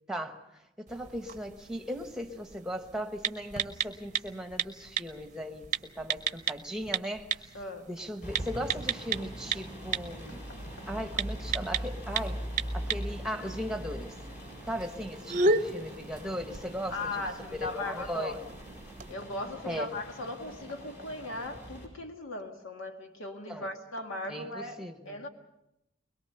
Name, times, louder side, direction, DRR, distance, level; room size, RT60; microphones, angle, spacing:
voice 1, 0.1-7.5 7.9-10.5 10.9-12.4 12.7-14.2 14.7-17.3 17.5-18.4 19.7-19.9 23.5-23.7 24.3-25.2, equal, 5° right, 1.3 m, -38 dB
sound 1, 0.9-19.1, right 4 dB, 40° right, 0.8 m, -36 dB
voice 2, 7.5-7.9 10.3-10.4 16.9-18.4 19.1-24.8 25.1-25.3, left 2 dB, 75° left, 1.9 m, -38 dB
sound 2, 8.2-21.9, equal, 40° left, 6.7 m, -41 dB
22.5 x 21.5 x 6.9 m
head